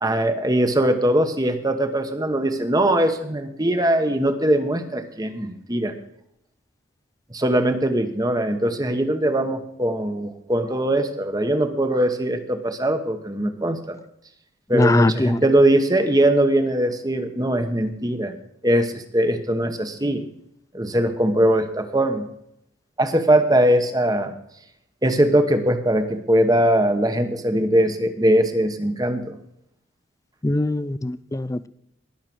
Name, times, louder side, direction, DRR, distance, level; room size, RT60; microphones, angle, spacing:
voice 1, 0.0-5.9 7.3-14.0 14.7-18.3 18.6-20.2 20.7-22.3 23.0-24.3 25.0-29.4, right 1 dB, 20° right, 8 dB, 1.0 m, -21 dB
voice 2, 14.7-15.4 30.4-31.7, left 2 dB, 15° left, 17 dB, 0.4 m, -21 dB
20.0 x 6.7 x 6.1 m, 0.77 s
head